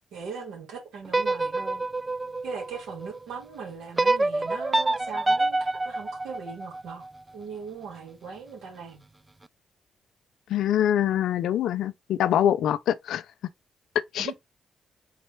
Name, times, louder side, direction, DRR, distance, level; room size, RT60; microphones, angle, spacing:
voice 1, 0.1-1.8 2.4-7.0 7.3-9.0 14.2-14.3, right 5 dB, 75° right, 1.8 m, -39 dB
sound 1, 1.1-3.2 4.0-7.1, right 2 dB, 25° right, 0.3 m, -27 dB
voice 2, 10.5-13.2 14.1-14.3, left 10 dB, 75° left, 0.3 m, -24 dB
4.2 x 4.0 x 3.0 m
hypercardioid pair, 40°, 0 cm